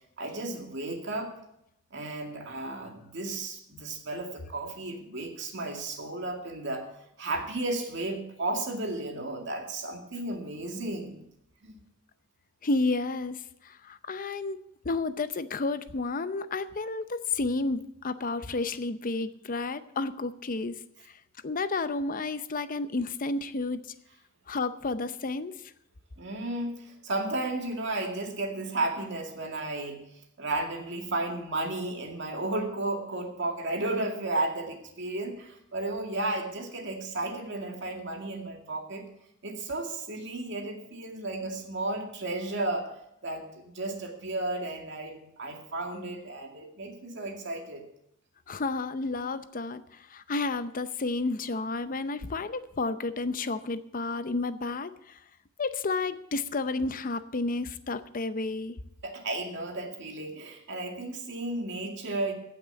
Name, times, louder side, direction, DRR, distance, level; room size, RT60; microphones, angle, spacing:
voice 1, 0.2-1.3 1.9-6.9 7.2-11.2 11.6-11.8 26.2-30.1 30.4-39.1 39.4-42.9 43.2-47.9 59.0-62.3, right 2 dB, 60° right, 3 dB, 2.1 m, -33 dB
voice 2, 12.6-13.4 13.9-14.6 14.8-20.8 21.4-23.8 24.5-25.5 48.5-49.8 50.1-54.9 55.6-58.8, left 3 dB, 45° left, 12 dB, 0.7 m, -31 dB
16.0 x 6.1 x 7.1 m, 0.78 s
head